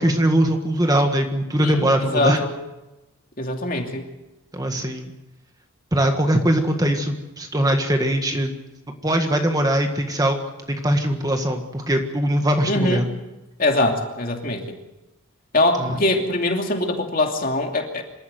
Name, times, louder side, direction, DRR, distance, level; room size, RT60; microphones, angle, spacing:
voice 1, 0.0-2.4 4.5-5.1 5.9-8.5 9.0-13.0 15.8-16.0, right 1 dB, 15° right, 5 dB, 1.6 m, -21 dB
voice 2, 1.6-2.5 3.4-4.1 12.7-13.0 13.6-14.6 15.5-18.0, left 2 dB, 40° left, 3 dB, 2.8 m, -22 dB
26.0 x 14.0 x 9.2 m, 1.0 s
head